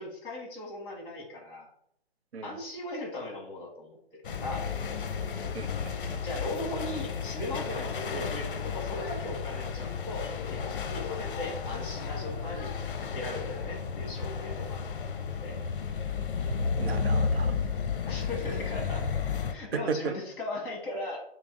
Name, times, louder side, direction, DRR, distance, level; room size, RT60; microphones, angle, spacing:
voice 1, 0.0-1.7 2.4-4.0 4.3-4.7 6.2-12.8 13.1-14.8 15.4-15.6 18.1-19.1 19.5-21.2, left 1 dB, 25° left, 0 dB, 1.4 m, -38 dB
sound 1, 4.2-19.5, left 5 dB, 55° left, 0.6 m, -32 dB
voice 2, 5.5-6.2 16.8-17.6 19.7-20.2, right 6 dB, 75° right, 9 dB, 0.6 m, -35 dB
5.8 x 2.0 x 3.7 m, 0.72 s
hypercardioid pair, 145°, 31 cm